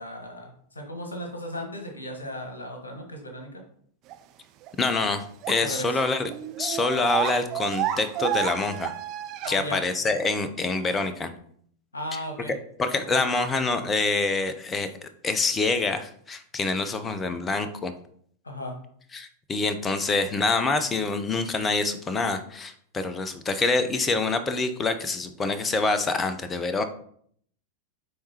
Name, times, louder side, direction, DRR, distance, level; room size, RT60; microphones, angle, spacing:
voice 1, 0.0-3.6 5.6-6.0 9.4-9.8 11.9-12.5 13.0-13.2 18.4-18.8, equal, 75° left, 3 dB, 1.4 m, -36 dB
sound 1, 4.1-4.2 4.6-4.7 5.4-5.6 5.8-5.9 6.1-9.5, right 11 dB, 40° right, 0.4 m, -30 dB
voice 2, 4.8-6.3 6.6-8.9 9.5-11.3 12.1-12.2 12.8-17.9 19.1-26.8, left 3 dB, 20° left, 10 dB, 0.6 m, -26 dB
9.2 x 3.6 x 2.9 m, 0.62 s
figure-of-eight pair, 90°, 0 cm